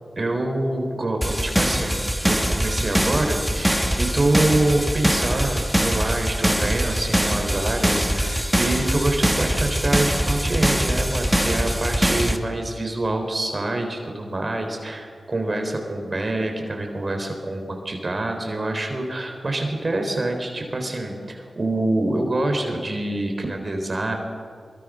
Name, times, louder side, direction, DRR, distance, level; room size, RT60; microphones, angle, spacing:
voice 1, 0.2-2.0 2.2-24.1, right 2 dB, 45° right, 4 dB, 4.0 m, -26 dB
sound 1, 1.2-12.4, equal, 5° right, 1.9 m, -22 dB
22.5 x 22.5 x 6.4 m, 2.1 s
cardioid pair, 55°, 0 cm